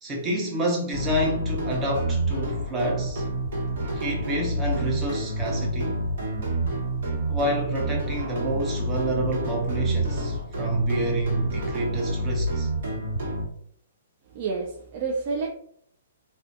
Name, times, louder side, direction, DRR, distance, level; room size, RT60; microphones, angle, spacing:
voice 1, 0.0-3.2 3.9-6.0 7.3-12.7, right 1 dB, 20° right, 0.7 m, -28 dB
sound 1, 0.9-13.5, right 1 dB, 65° right, 1.1 m, -28 dB
voice 2, 14.3-15.5, right 4 dB, 40° right, 0.3 m, -29 dB
2.3 x 2.2 x 2.6 m
hypercardioid pair, 140°, 0 cm